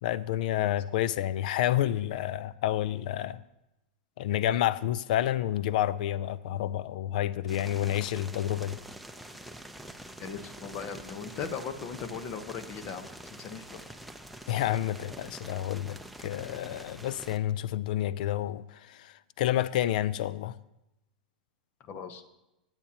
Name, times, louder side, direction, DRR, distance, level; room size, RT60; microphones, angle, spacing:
voice 1, 0.0-3.4 4.2-8.8 14.5-20.6, left 12 dB, 65° left, 0.4 m, -29 dB
sound 1, 7.5-17.4, right 1 dB, ahead, 0.7 m, -46 dB
voice 2, 10.2-13.1 13.4-13.8 21.9-22.2, left 6 dB, 40° left, 1.0 m, -38 dB
18.5 x 8.8 x 2.9 m
hypercardioid pair, 110°, 5 cm